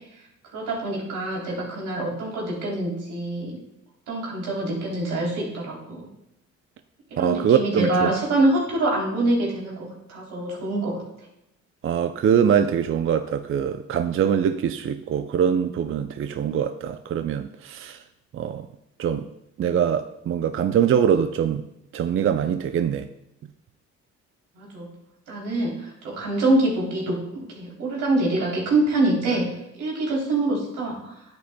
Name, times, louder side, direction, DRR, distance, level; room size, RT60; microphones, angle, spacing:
voice 1, 0.5-3.6 4.1-6.1 7.1-11.0 24.6-24.9 25.3-25.7 26.0-29.4 29.8-31.0, right 2 dB, 90° right, 3.3 m, -25 dB
voice 2, 7.2-8.1 11.8-18.0 18.3-18.7 19.0-19.3 19.6-21.6 21.9-23.1, right 8 dB, 45° right, 0.5 m, -23 dB
10.0 x 8.6 x 2.2 m
cardioid pair, 90°, 30 cm